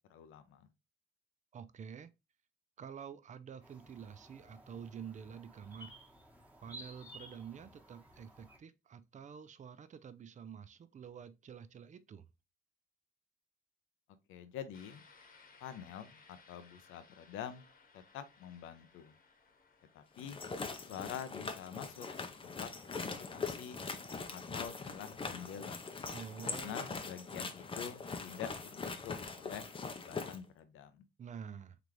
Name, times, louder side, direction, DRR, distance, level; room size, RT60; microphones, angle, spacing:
voice 1, 0.1-0.7 14.3-15.0 15.6-17.7 17.9-19.1 19.9-20.4 20.9-22.1 22.4-22.7 23.0-23.8 24.3-25.8 26.4-28.5 28.8-29.7 30.0-31.0, left 9 dB, 90° left, 0.7 m, -46 dB
voice 2, 1.5-2.1 2.8-6.0 6.6-12.3 26.1-26.9 31.2-31.8, right 7 dB, 40° right, 0.5 m, -48 dB
sound 1, 3.6-8.6, right 1 dB, 5° right, 1.2 m, -55 dB
sound 2, 14.7-21.4, left 4 dB, 45° left, 1.1 m, -63 dB
sound 3, 20.2-30.4, left 4 dB, 25° left, 0.6 m, -42 dB
3.9 x 3.3 x 3.0 m
cardioid pair, 90°, 20 cm